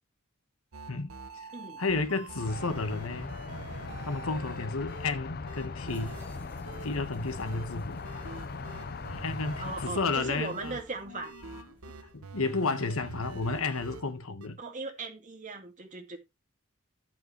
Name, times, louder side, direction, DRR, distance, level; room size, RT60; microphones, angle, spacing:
sound 1, 0.7-5.2 5.5-6.4 6.7-7.0 7.4-14.5, right 3 dB, 85° right, 1.0 m, -46 dB
voice 1, 0.9-1.5 1.8-3.4 4.0-6.4 6.8-8.1 9.1-10.8 11.1-11.2 11.5-11.6 12.1-14.6, left 3 dB, 75° left, 1.3 m, -32 dB
voice 2, 1.5-1.8 9.6-11.3 14.6-16.2, right 3 dB, 35° right, 2.2 m, -38 dB
sound 2, 2.4-9.9, left 4 dB, 45° left, 0.6 m, -40 dB
sound 3, 5.9-13.6, equal, 10° left, 7.8 m, -51 dB
12.5 x 7.5 x 3.1 m
head